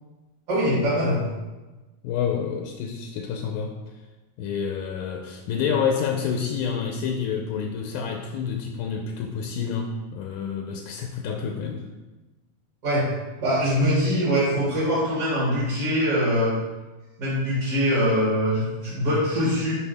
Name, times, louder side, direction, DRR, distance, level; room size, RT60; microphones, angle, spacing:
voice 1, 0.5-1.2 7.5-7.6 12.8-13.1 13.4-16.5 17.2-19.7, equal, 45° right, -9 dB, 3.8 m, -23 dB
voice 2, 2.0-3.8 4.4-11.9, left 6 dB, 75° left, 3 dB, 1.9 m, -28 dB
11.5 x 4.8 x 3.5 m, 1.2 s
omnidirectional pair, 3.8 m